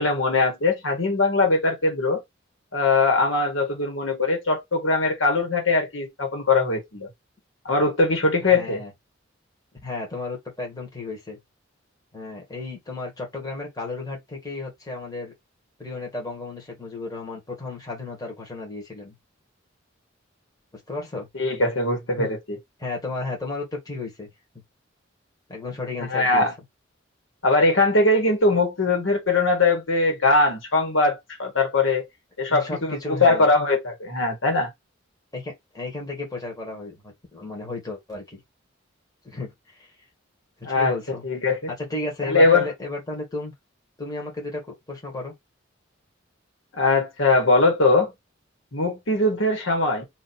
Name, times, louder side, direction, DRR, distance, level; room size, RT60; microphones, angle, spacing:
voice 1, 0.0-2.2 2.7-7.1 7.7-8.8 21.3-22.4 26.1-26.5 27.4-32.0 32.4-34.7 40.6-40.9 41.2-41.7 42.3-42.7 46.7-48.1 48.7-50.0, left 3 dB, 80° left, 1.6 m, -21 dB
voice 2, 8.5-8.9 9.8-11.4 12.1-15.3 15.8-19.1 20.9-21.3 22.2-22.3 22.8-24.3 25.5-26.5 32.5-33.5 35.3-38.4 39.2-39.9 40.6-41.2 41.8-43.5 44.0-45.3, left 2 dB, 20° left, 1.5 m, -33 dB
2.9 x 2.9 x 4.1 m
head